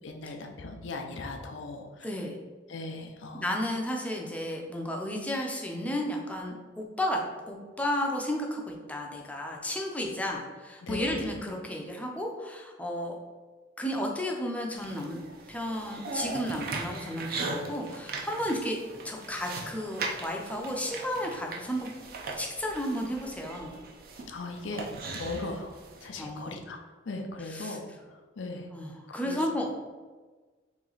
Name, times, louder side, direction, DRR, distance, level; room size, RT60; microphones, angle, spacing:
voice 1, 0.0-2.2 2.7-3.7 10.8-11.3 24.3-24.9 25.1-25.7 26.0-26.8 27.1-28.7 29.1-29.5, left 3 dB, 70° left, 3 dB, 0.5 m, -38 dB
voice 2, 2.0-2.4 3.3-7.2 7.5-13.2 13.8-15.2 15.5-18.8 19.0-21.9 22.4-23.7 26.2-26.5 27.5-27.8 28.7-29.9, left 1 dB, 5° left, 0 dB, 0.5 m, -33 dB
sound 1, 14.7-26.1, right 3 dB, 50° right, 0.5 m, -39 dB
3.2 x 3.0 x 3.9 m, 1.4 s
head